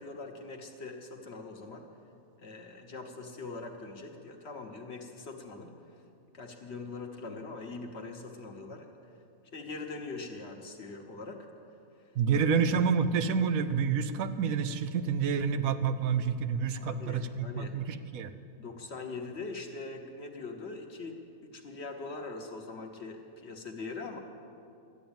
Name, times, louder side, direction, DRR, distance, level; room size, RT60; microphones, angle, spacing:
voice 1, 0.0-1.8 2.4-5.7 6.3-8.9 9.5-11.5 16.7-17.8 18.6-24.2, left 3 dB, 50° left, 3 dB, 1.3 m, -42 dB
voice 2, 12.1-18.3, right 6 dB, 75° right, 11 dB, 1.1 m, -28 dB
12.5 x 9.2 x 8.8 m, 2.6 s
omnidirectional pair, 1.5 m